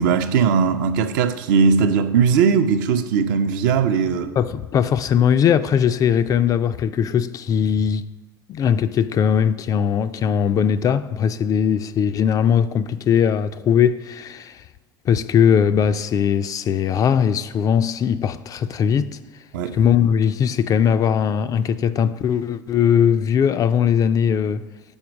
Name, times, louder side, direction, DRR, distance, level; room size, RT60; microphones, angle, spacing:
voice 1, 0.0-4.3 19.5-19.8, right 6 dB, 65° right, 0.6 m, -19 dB
voice 2, 4.4-8.1 8.5-14.6 15.1-19.1 19.7-24.7, left 8 dB, 30° left, 0.3 m, -19 dB
7.1 x 4.4 x 6.0 m
hypercardioid pair, 80°, 11 cm